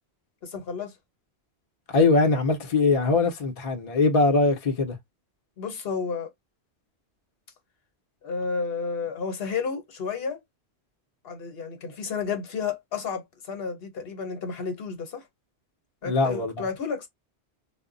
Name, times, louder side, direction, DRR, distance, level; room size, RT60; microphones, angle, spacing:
voice 1, 0.4-0.9 5.6-6.3 8.2-10.4 11.2-15.2 16.0-17.1, left 5 dB, 65° left, 1.0 m, -31 dB
voice 2, 1.9-5.0 16.0-16.7, left 3 dB, 40° left, 0.6 m, -22 dB
2.1 x 2.0 x 3.7 m
omnidirectional pair, 1.1 m